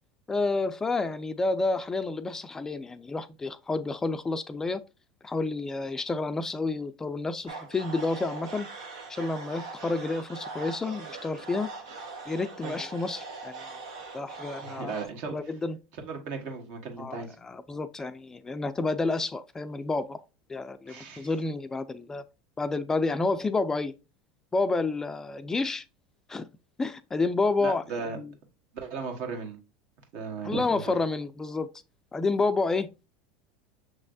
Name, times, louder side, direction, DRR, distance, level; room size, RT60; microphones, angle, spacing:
voice 1, 0.3-4.8 5.2-8.7 9.1-11.7 12.3-13.6 14.1-15.0 15.3-15.8 17.0-20.2 20.5-22.2 22.6-23.9 24.5-25.8 26.3-26.5 26.8-28.3 30.4-31.7 32.1-33.1, left 3 dB, 15° left, 0.3 m, -30 dB
sound 1, 7.5-15.1, right 3 dB, 85° right, 1.1 m, -41 dB
voice 2, 14.6-15.5 16.0-17.4 20.9-21.3 27.6-28.2 28.7-29.6 30.1-30.8, right 4 dB, 60° right, 1.4 m, -36 dB
6.4 x 3.1 x 2.5 m
supercardioid pair, 110°, 3 cm